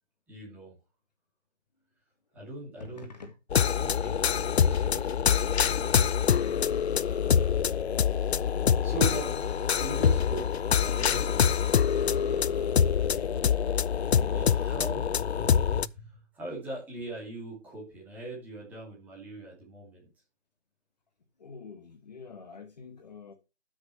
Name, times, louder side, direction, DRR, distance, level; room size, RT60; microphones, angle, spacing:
voice 1, 0.3-0.8 2.3-3.1 3.8-6.0 6.4-6.8 8.2-8.4 8.8-9.3 9.8-12.5 13.1-13.5 14.2-20.1, right 2 dB, 5° right, 2.4 m, -41 dB
voice 2, 2.8-3.3 7.0-7.1 14.0-15.5 21.4-23.3, left 4 dB, 35° left, 1.7 m, -47 dB
sound 1, 3.5-15.9, left 7 dB, 65° left, 0.6 m, -25 dB
sound 2, 8.7-10.2, left 6 dB, 15° left, 1.1 m, -45 dB
12.5 x 6.4 x 3.1 m
hypercardioid pair, 170°, 35 cm